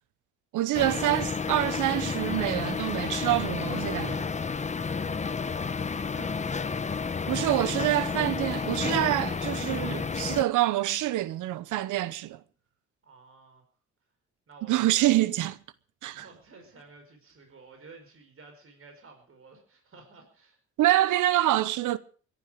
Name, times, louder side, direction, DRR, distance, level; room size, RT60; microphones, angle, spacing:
voice 1, 0.5-4.3 7.3-12.4 14.7-15.6 16.0-16.2 20.8-22.0, right 15 dB, 80° right, 0.9 m, -26 dB
sound 1, 0.7-10.4, left 5 dB, 25° left, 0.9 m, -31 dB
voice 2, 4.8-6.8 13.0-13.6 14.5-15.1 16.1-20.6, right 3 dB, 45° right, 5.2 m, -53 dB
21.5 x 11.5 x 5.0 m
cardioid pair, 90°, 30 cm